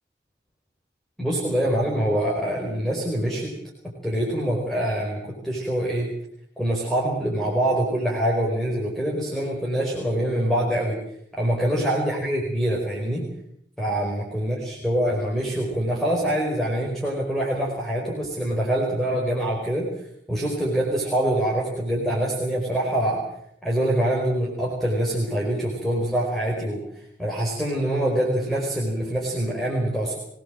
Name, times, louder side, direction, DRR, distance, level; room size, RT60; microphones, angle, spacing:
voice 1, 1.2-3.5 4.0-6.1 6.6-11.0 11.3-13.3 13.8-19.9 20.3-23.2 23.6-26.8 27.2-30.2, right 1 dB, ahead, -3 dB, 4.9 m, -25 dB
24.0 x 18.5 x 7.7 m, 0.70 s
head